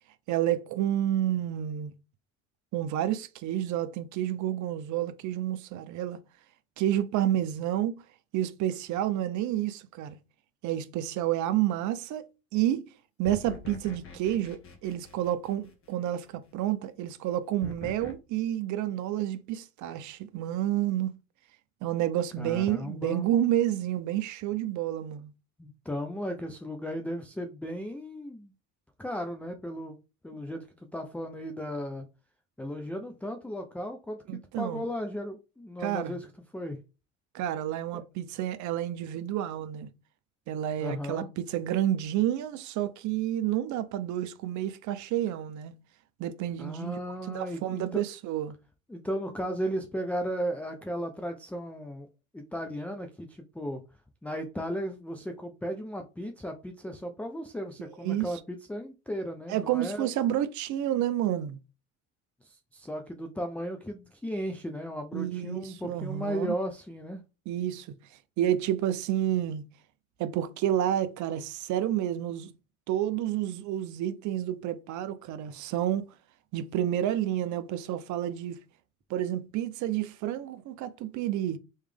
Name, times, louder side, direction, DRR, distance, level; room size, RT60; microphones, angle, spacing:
voice 1, 0.3-1.9 2.7-6.2 6.8-8.0 8.3-10.2 10.6-12.9 13.2-21.1 21.8-25.3 34.3-34.9 35.8-36.2 37.3-39.9 40.5-45.7 46.2-47.0 47.3-48.5 57.8-58.3 59.5-61.6 65.1-66.5 67.5-67.9 68.4-69.6 70.2-72.5 72.9-76.1 76.5-78.6 79.1-81.6, right 12 dB, 45° right, 0.6 m, -30 dB
sound 1, 13.2-16.1 17.6-18.1, left 3 dB, 35° left, 1.2 m, -44 dB
voice 2, 22.4-23.3 25.6-28.5 29.0-30.0 30.2-30.7 30.9-32.1 32.6-36.3 36.5-36.8 37.9-38.0 40.8-41.3 46.6-48.0 48.9-52.1 52.3-53.8 54.2-60.1 62.4-67.2, equal, 5° left, 0.4 m, -35 dB
3.2 x 3.2 x 3.3 m
hypercardioid pair, 65°, 40 cm